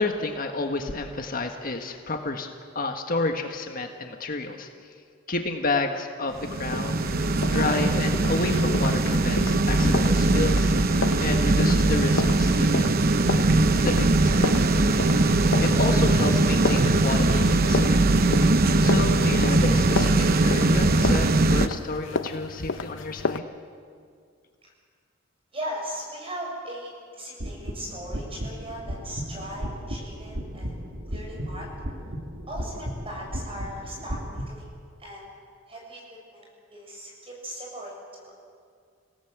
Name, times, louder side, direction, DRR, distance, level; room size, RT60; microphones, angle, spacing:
voice 1, 0.0-2.5 2.7-4.7 5.3-7.0 7.5-10.7 11.2-12.9 13.8-14.5 15.6-18.0 18.8-23.4, left 2 dB, 50° left, 4 dB, 1.6 m, -30 dB
sound 1, 6.4-21.7, right 2 dB, 50° right, 0.9 m, -21 dB
Walking woman, 6.7-23.4, left 4 dB, 85° left, 0.8 m, -33 dB
voice 2, 25.5-30.7 31.1-31.7 32.5-34.7 35.0-35.3 35.7-36.0 36.3-38.3, equal, 30° right, -1 dB, 7.2 m, -38 dB
sound 2, 27.4-34.5, equal, 90° right, 2.7 m, -35 dB
28.5 x 17.5 x 8.1 m, 2.2 s
head